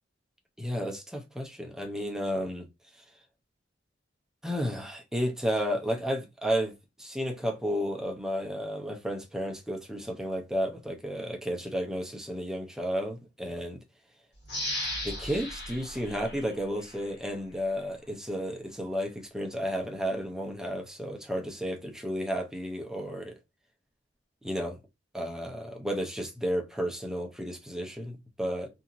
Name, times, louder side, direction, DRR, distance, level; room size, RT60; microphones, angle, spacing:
voice 1, 0.6-2.7 4.4-6.7 7.0-13.8 15.0-23.3 24.4-24.8 25.1-28.7, equal, 5° right, 0.6 m, -32 dB
sound 1, 14.5-17.1 17.6-17.7, left 1 dB, 60° left, 1.5 m, -36 dB
2.8 x 2.7 x 2.4 m
head